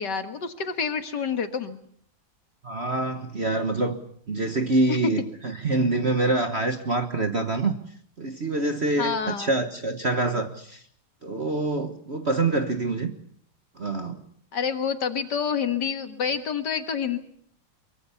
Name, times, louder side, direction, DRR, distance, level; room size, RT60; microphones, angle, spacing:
voice 1, 0.0-1.8 4.9-5.0 9.0-9.5 14.5-17.2, left 6 dB, 55° left, 8 dB, 2.0 m, -28 dB
voice 2, 2.6-4.0 4.3-7.7 8.2-10.8 11.2-13.1 13.8-14.2, right 2 dB, 35° right, 7 dB, 1.3 m, -26 dB
23.5 x 23.0 x 7.0 m, 0.63 s
omnidirectional pair, 2.3 m